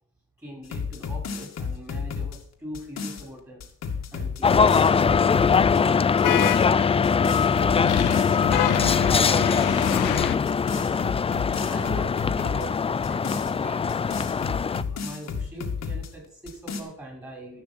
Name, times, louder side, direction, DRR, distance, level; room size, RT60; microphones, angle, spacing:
voice 1, 0.4-3.6 4.1-8.8 9.1-10.2 11.7-13.8 14.8-17.6, right 1 dB, 10° right, -1 dB, 5.6 m, -40 dB
sound 1, 0.6-3.2 3.6-5.8 6.2-6.7 7.0-9.2 9.6-10.1 10.5-12.7 13.0-16.1 16.5-16.8, left 5 dB, 60° left, 2.2 m, -32 dB
sound 2, 4.4-14.8, left 6 dB, 20° left, 0.3 m, -22 dB
sound 3, 4.6-5.3 6.2-7.2 7.8-10.4, left 13 dB, 85° left, 0.7 m, -28 dB
14.5 x 6.0 x 6.1 m, 0.64 s
cardioid pair, 90°, 30 cm